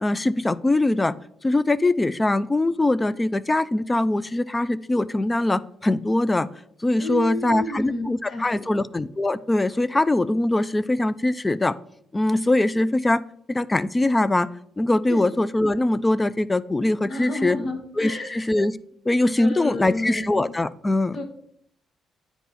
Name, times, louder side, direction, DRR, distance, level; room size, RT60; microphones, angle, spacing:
voice 1, 0.0-1.1 1.4-6.5 6.8-11.7 12.1-13.2 13.5-14.5 14.8-17.6 18.0-18.7 19.1-21.2, left 2 dB, 20° left, 17 dB, 0.3 m, -22 dB
voice 2, 7.0-8.8 15.1-15.2 17.0-18.4 19.4-20.5 21.1-21.2, left 1 dB, 50° left, 3 dB, 1.1 m, -31 dB
9.4 x 4.6 x 4.1 m, 0.71 s
cardioid pair, 90°, 0 cm